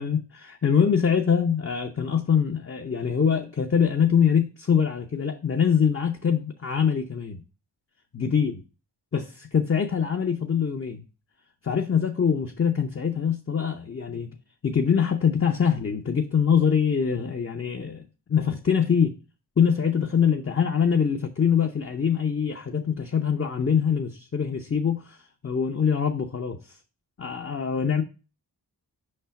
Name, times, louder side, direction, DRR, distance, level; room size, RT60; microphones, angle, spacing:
voice 1, 0.0-7.4 8.1-8.6 9.1-11.0 11.6-14.3 14.6-18.0 18.3-19.1 19.6-26.8 27.2-28.0, left 7 dB, 35° left, 0.6 m, -24 dB
5.5 x 3.3 x 5.7 m
wide cardioid pair, 60°, 43 cm